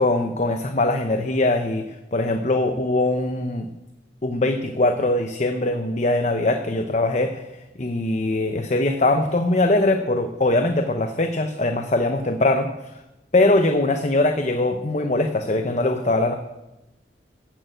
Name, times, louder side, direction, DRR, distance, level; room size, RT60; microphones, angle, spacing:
voice 1, 0.0-3.7 4.2-7.4 7.8-12.7 13.3-16.3, left 2 dB, 40° left, 6 dB, 0.8 m, -21 dB
15.5 x 6.7 x 9.0 m, 0.96 s
head